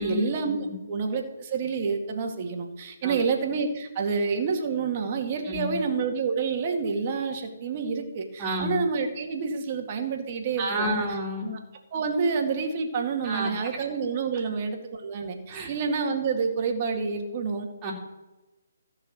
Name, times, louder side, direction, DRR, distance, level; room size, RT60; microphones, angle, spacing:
voice 1, 0.0-11.0 11.9-17.7, right 5 dB, 35° right, 3 dB, 2.1 m, -28 dB
voice 2, 5.4-5.8 8.4-8.8 10.6-11.5 13.2-13.5 15.5-15.7 17.8-17.9, equal, 20° right, -3 dB, 3.3 m, -30 dB
14.5 x 6.5 x 6.4 m, 1.1 s
figure-of-eight pair, 145°, 0 cm